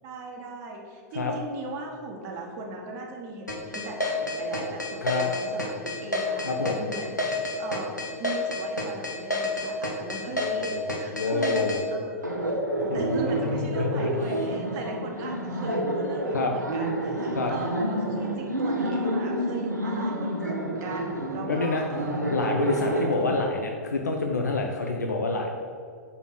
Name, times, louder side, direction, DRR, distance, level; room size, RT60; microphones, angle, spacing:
voice 1, 0.0-22.3 23.0-23.3, right 2 dB, 35° right, 0 dB, 1.3 m, -38 dB
sound 1, 3.5-11.8, left 1 dB, 90° left, 1.1 m, -29 dB
voice 2, 6.4-6.8 10.3-11.8 12.9-14.1 16.3-16.5 17.3-17.5 21.5-21.8 22.3-25.5, left 3 dB, 75° left, 2 dB, 0.6 m, -28 dB
Laughter, 12.2-23.1, right 1 dB, 85° right, 0.9 m, -29 dB
5.4 x 4.2 x 5.9 m, 2.3 s
figure-of-eight pair, 100°, 9 cm